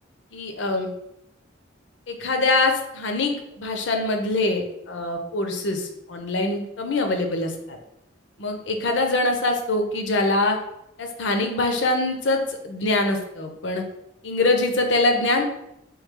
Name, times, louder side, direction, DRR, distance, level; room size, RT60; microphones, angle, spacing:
voice 1, 0.3-0.9 2.1-7.8 8.4-10.6 11.0-13.8 14.2-15.4, left 2 dB, 65° left, 5 dB, 0.6 m, -24 dB
3.2 x 3.1 x 3.6 m, 0.82 s
head